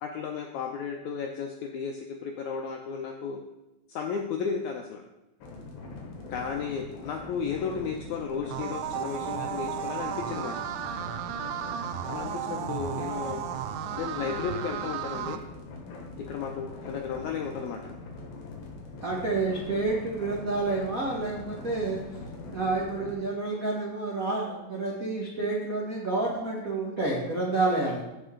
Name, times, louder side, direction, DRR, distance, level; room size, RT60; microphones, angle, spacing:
voice 1, 0.0-3.4 3.9-5.0 6.3-10.5 12.0-13.4 13.9-15.4 16.2-17.9, left 6 dB, 90° left, 2 dB, 1.7 m, -34 dB
sound 1, 5.4-23.1, left 3 dB, 70° left, 3.2 m, -42 dB
sound 2, 8.5-15.4, right 10 dB, 85° right, 1.7 m, -34 dB
voice 2, 19.0-22.0 22.5-28.0, right 3 dB, 70° right, -4 dB, 0.8 m, -29 dB
15.0 x 5.4 x 3.8 m, 0.99 s
omnidirectional pair, 4.2 m